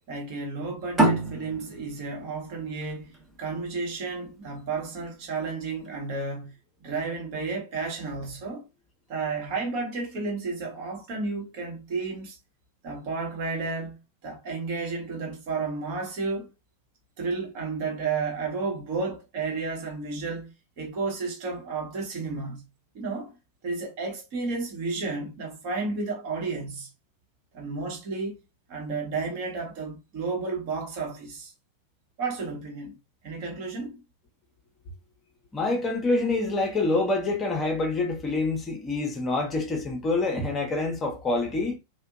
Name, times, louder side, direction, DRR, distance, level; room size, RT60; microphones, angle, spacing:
voice 1, 0.1-3.1 3.4-6.5 6.8-8.6 9.1-12.4 12.8-16.5 17.2-22.6 22.9-23.3 23.6-26.9 27.5-28.4 28.7-31.5 32.2-33.0 33.2-34.0, right 4 dB, 45° right, 1.0 m, -32 dB
sound 1, 1.0-4.2, right 1 dB, 20° right, 0.8 m, -27 dB
voice 2, 35.5-41.8, left 2 dB, 20° left, 0.7 m, -26 dB
2.6 x 2.2 x 2.4 m
figure-of-eight pair, 90°, 0 cm